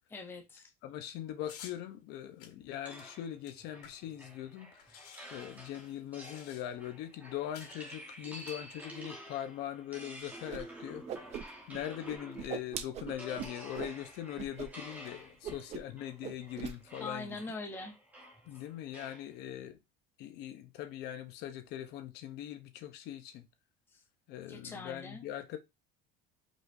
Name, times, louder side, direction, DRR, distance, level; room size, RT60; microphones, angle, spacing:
voice 1, 0.1-0.7 17.0-18.0 23.9-24.0 24.5-25.3, left 3 dB, 10° left, 0.7 m, -42 dB
voice 2, 0.8-5.0 5.3-11.4 11.7-17.4 18.5-19.8 20.2-23.5 24.3-25.6, left 11 dB, 50° left, 0.8 m, -41 dB
sound 1, 1.4-1.8 2.4-4.2 4.5-4.6 4.8-6.9 7.5-7.8 8.3-9.1, left 8 dB, 90° left, 2.1 m, -53 dB
sound 2, 2.8-12.6 13.1-19.3, equal, 5° right, 1.3 m, -50 dB
Whoosh swoosh swish, 10.5-10.6 10.9-11.8 12.1-14.0 14.4-14.7 14.9-15.1 15.4-16.0 16.2-16.8, right 8 dB, 30° right, 0.5 m, -40 dB
5.0 x 3.9 x 2.6 m
cardioid pair, 165°, 21 cm